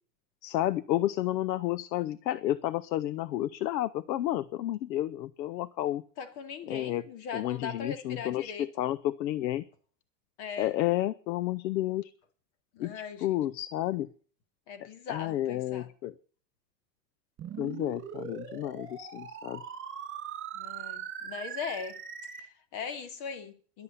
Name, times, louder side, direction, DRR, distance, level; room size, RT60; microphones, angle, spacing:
voice 1, 0.4-6.0 6.7-7.0 7.3-9.6 10.6-12.1 12.8-14.1 15.1-16.1 17.6-19.6, left 14 dB, 85° left, 18 dB, 0.8 m, -31 dB
voice 2, 6.2-8.7 10.4-10.7 12.7-13.3 14.7-15.9 20.5-22.0 22.4-23.8, left 6 dB, 50° left, 9 dB, 2.6 m, -39 dB
sound 1, 17.4-22.4, right 8 dB, 25° right, 2.8 m, -41 dB
11.5 x 7.8 x 9.8 m, 0.42 s
supercardioid pair, 130°, 50 cm